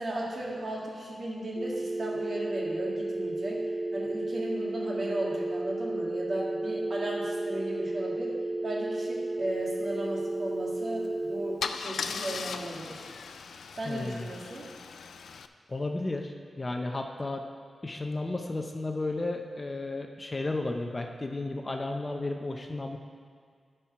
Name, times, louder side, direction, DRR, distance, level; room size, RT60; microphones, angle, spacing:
voice 1, 0.0-3.6 3.9-13.1 13.7-14.7, right 1 dB, 50° right, -3 dB, 1.9 m, -36 dB
sound 1, 1.5-11.6, right 2 dB, 10° right, 0.8 m, -33 dB
Car / Engine starting / Idling, 10.9-11.1 11.6-15.5, left 5 dB, 85° left, 0.3 m, -38 dB
voice 2, 13.9-14.3 15.7-17.5 17.8-23.0, left 2 dB, 25° left, 3 dB, 0.6 m, -33 dB
11.0 x 4.6 x 5.6 m, 2.1 s
wide cardioid pair, 95°, 0 cm